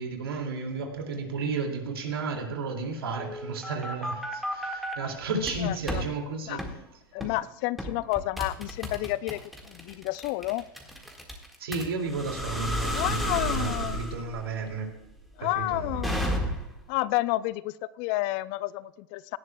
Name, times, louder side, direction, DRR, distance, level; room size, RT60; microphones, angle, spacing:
voice 1, 0.0-6.6 11.6-14.9 15.4-16.4, right 4 dB, 85° right, 3 dB, 2.5 m, -33 dB
sound 1, 3.2-4.9 5.4-6.1 6.6-6.7 7.2-7.4 7.8-16.8, equal, ahead, 1.8 m, -33 dB
voice 2, 5.6-6.0 6.5-6.6 7.1-10.6 12.9-14.0 15.4-16.2 16.9-19.4, left 18 dB, 45° left, 19 dB, 0.4 m, -30 dB
17.5 x 11.0 x 2.3 m, 0.90 s
hypercardioid pair, 120°, 12 cm